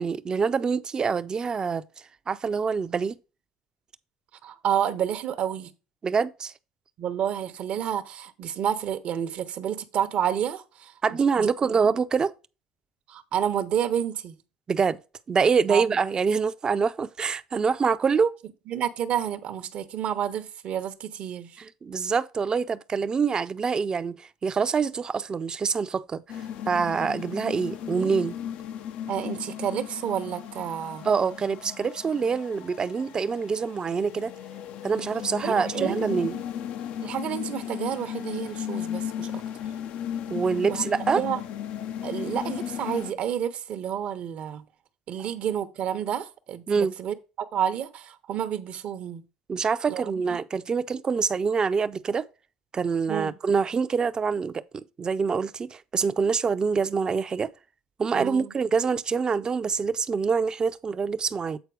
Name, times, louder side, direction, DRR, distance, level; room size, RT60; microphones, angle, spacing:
voice 1, 0.0-1.8 2.3-3.2 6.0-6.5 11.0-12.3 14.7-15.0 15.3-18.3 21.6-26.2 26.7-28.3 31.0-34.3 34.8-36.3 40.3-41.2 46.7-46.9 49.5-52.3 52.7-57.5 58.0-61.6, right 5 dB, 30° right, 0.6 m, -25 dB
voice 2, 4.4-5.7 7.0-10.9 11.4-11.9 13.1-14.4 15.7-16.0 18.7-21.6 27.9-28.1 29.1-31.1 35.4-36.4 37.0-39.4 40.7-40.8 41.1-41.4 42.0-44.6 45.1-49.2 49.9-50.4 53.1-53.3 58.1-58.5, right 9 dB, 60° right, 0.9 m, -30 dB
sound 1, 26.3-43.1, left 9 dB, 70° left, 0.6 m, -35 dB
8.2 x 4.2 x 4.8 m
supercardioid pair, 85°, 2 cm